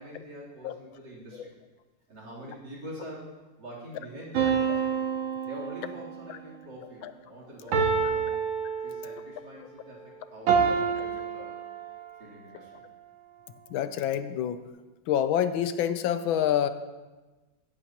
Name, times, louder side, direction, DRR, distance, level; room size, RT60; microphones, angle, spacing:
voice 1, 0.0-1.4 2.1-3.3 3.6-4.8 5.5-8.4 8.8-11.5 12.2-12.8, right 1 dB, 60° right, -4 dB, 4.0 m, -44 dB
sound 1, 4.3-6.2 7.7-9.3 10.5-12.2, right 6 dB, 80° right, 1.9 m, -27 dB
voice 2, 13.7-14.6 15.1-16.7, left 10 dB, 85° left, 11 dB, 1.5 m, -27 dB
16.5 x 14.0 x 2.9 m, 1.2 s
omnidirectional pair, 2.2 m